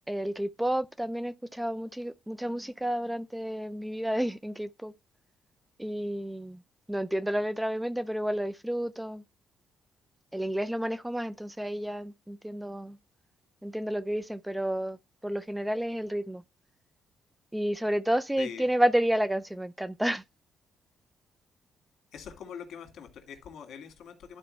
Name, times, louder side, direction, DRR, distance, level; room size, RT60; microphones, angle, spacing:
voice 1, 0.1-4.9 5.8-6.6 6.9-9.2 10.3-13.0 13.6-15.0 15.2-16.4 17.5-20.2, right 1 dB, 5° right, 0.4 m, -30 dB
voice 2, 22.1-24.4, left 7 dB, 70° left, 2.0 m, -43 dB
11.0 x 4.5 x 3.2 m
cardioid pair, 90°, 0 cm